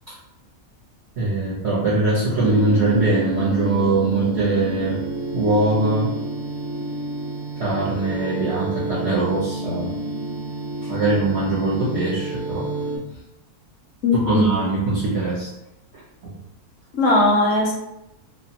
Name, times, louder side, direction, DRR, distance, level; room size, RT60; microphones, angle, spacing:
voice 1, 1.2-5.0 5.3-6.1 7.6-10.0 10.8-12.7 14.2-15.5 15.9-16.3, right 2 dB, 55° right, -8 dB, 0.9 m, -22 dB
sound 1, 2.3-13.0, right 2 dB, ahead, 0.4 m, -29 dB
voice 2, 14.0-14.5 16.9-17.7, left 2 dB, 65° left, -2 dB, 0.8 m, -18 dB
2.5 x 2.1 x 2.7 m, 0.87 s
omnidirectional pair, 1.5 m